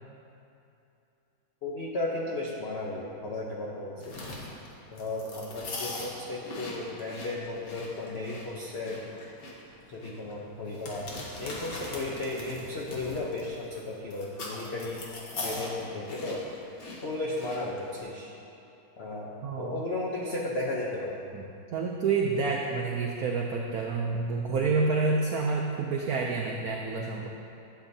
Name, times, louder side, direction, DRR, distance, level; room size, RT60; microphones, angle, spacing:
voice 1, 1.6-4.3 4.9-9.0 9.9-11.1 11.4-15.0 15.4-16.4 17.0-18.3 19.0-19.3 19.6-21.2, left 2 dB, 75° left, -4 dB, 0.5 m, -34 dB
sound 1, 4.0-18.0, left 2 dB, 50° left, 1.4 m, -41 dB
voice 2, 19.4-19.8 21.3-21.4 21.7-27.3, right 4 dB, 85° right, 0 dB, 0.8 m, -28 dB
11.5 x 7.4 x 2.7 m, 2.8 s
omnidirectional pair, 2.2 m